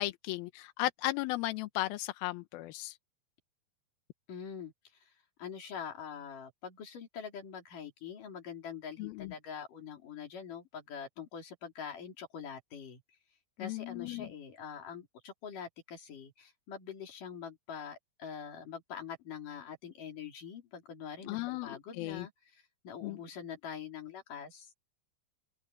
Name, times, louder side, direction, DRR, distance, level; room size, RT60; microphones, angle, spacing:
voice 1, 0.0-3.0 9.0-9.3 13.6-14.3 21.2-22.3 23.0-23.2, left 18 dB, 75° left, 2.3 m, -36 dB
voice 2, 4.3-4.7 5.0-5.1 5.4-13.0 13.6-24.7, left 7 dB, 50° left, 4.8 m, -44 dB
open air
omnidirectional pair, 5.0 m